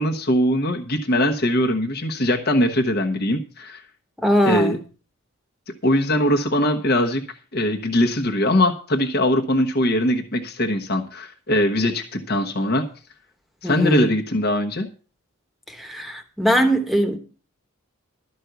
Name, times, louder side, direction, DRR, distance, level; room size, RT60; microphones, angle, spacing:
voice 1, 0.0-3.8 4.4-4.8 5.8-7.2 7.5-12.8 13.6-14.9, left 1 dB, 50° left, 1.2 m, -21 dB
voice 2, 4.2-4.8 13.6-14.1 15.7-17.2, equal, ahead, 1.2 m, -21 dB
13.0 x 5.4 x 8.0 m
head